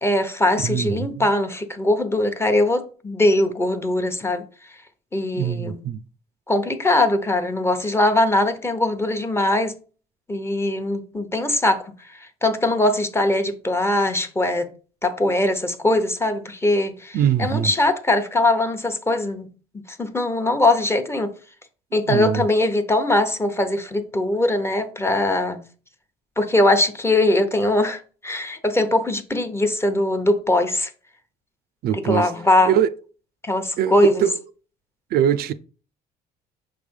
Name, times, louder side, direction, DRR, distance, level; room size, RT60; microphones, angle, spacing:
voice 1, 0.0-4.5 5.1-5.8 6.5-9.7 10.3-11.9 12.2-14.7 15.0-19.5 19.9-21.3 21.9-25.6 26.4-30.9 31.9-32.8 33.4-34.2, left 1 dB, 15° left, 0.9 m, -21 dB
voice 2, 0.6-1.3 5.3-6.0 17.1-17.7 21.9-22.4 31.8-32.3 32.7-32.9 33.8-34.3 35.1-35.5, right 9 dB, 65° right, 0.5 m, -22 dB
6.0 x 3.3 x 5.2 m
cardioid pair, 110°, 17 cm